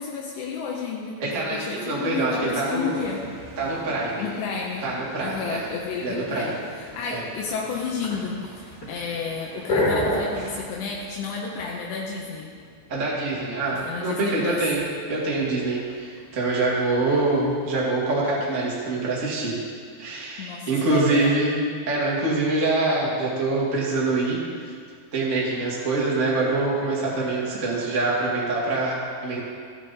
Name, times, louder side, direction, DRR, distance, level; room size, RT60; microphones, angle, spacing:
voice 1, 0.0-3.2 4.2-4.8 5.2-6.6 6.9-12.5 13.8-14.6 20.4-21.3, left 5 dB, 80° left, -2 dB, 3.0 m, -31 dB
voice 2, 1.2-3.0 3.6-4.3 4.8-5.7 6.0-6.6 7.1-7.2 12.9-19.6 20.0-21.6 21.8-24.7 25.1-29.4, right 2 dB, 35° right, -6 dB, 1.2 m, -25 dB
sound 1, 2.1-17.7, left 1 dB, 25° left, 3.3 m, -35 dB
sound 2, 2.8-10.6, right 2 dB, 50° right, 1.5 m, -46 dB
14.5 x 9.4 x 4.2 m, 2.1 s
omnidirectional pair, 5.1 m